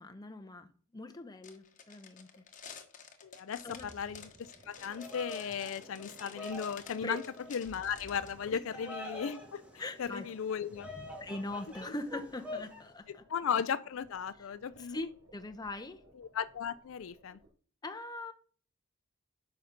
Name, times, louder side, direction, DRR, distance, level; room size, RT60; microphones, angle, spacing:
voice 1, 0.0-2.5 3.6-3.9 7.0-7.2 8.5-8.6 9.8-10.3 11.2-13.2 14.4-14.5 14.8-16.0 17.8-18.3, left 2 dB, 20° left, 0.7 m, -41 dB
sound 1, 1.4-8.3, left 6 dB, 40° left, 1.2 m, -51 dB
voice 2, 3.2-7.2 7.5-9.6 10.0-10.9 13.3-15.0 16.2-17.4, left 7 dB, 65° left, 0.4 m, -36 dB
sound 2, 3.4-17.5, right 1 dB, 90° right, 2.9 m, -60 dB
Bird vocalization bird call bird song, 4.8-12.8, left 2 dB, 5° right, 1.8 m, -46 dB
9.3 x 5.8 x 3.8 m
head